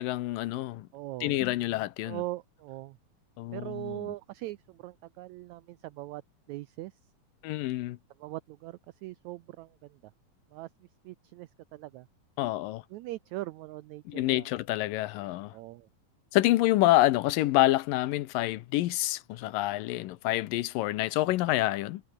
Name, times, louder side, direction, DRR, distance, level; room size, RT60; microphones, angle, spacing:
voice 1, 0.0-0.9 1.2-2.2 3.4-4.0 7.4-8.0 12.4-12.8 14.1-15.5 16.3-22.0, left 16 dB, 80° left, 2.6 m, -27 dB
voice 2, 0.9-1.4 2.0-3.0 3.5-6.2 6.5-6.9 8.2-10.0 10.5-10.7 11.0-12.1 12.9-14.5 15.5-15.9, right 17 dB, 85° right, 1.6 m, -40 dB
omnidirectional pair, 3.9 m